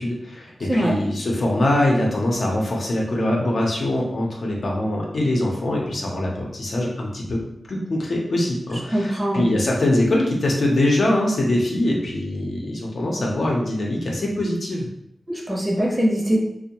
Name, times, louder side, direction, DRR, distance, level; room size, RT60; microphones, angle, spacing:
voice 1, 0.0-7.4 7.7-14.9, left 1 dB, 70° left, -2 dB, 0.6 m, -23 dB
voice 2, 8.9-9.5 15.3-16.4, equal, 25° right, -2 dB, 0.6 m, -22 dB
2.6 x 2.0 x 2.9 m, 0.76 s
wide cardioid pair, 90°, 0 cm